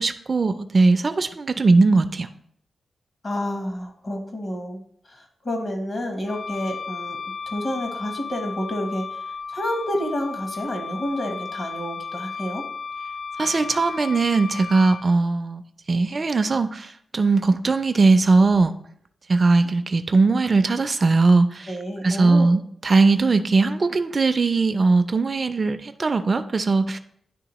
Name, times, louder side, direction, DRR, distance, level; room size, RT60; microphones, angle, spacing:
voice 1, 0.0-2.3 13.4-15.6 15.9-18.7 19.3-21.7 22.0-27.0, right 3 dB, 35° right, 8 dB, 0.3 m, -19 dB
voice 2, 3.2-4.8 5.1-7.2 7.5-9.2 9.5-12.6 21.7-22.5, equal, 40° left, 3 dB, 0.9 m, -29 dB
Wind instrument woodwind instrument, 6.3-15.1, left 5 dB, 75° left, 0.4 m, -34 dB
10.0 x 3.4 x 3.0 m, 0.67 s
wide cardioid pair, 135°, 0 cm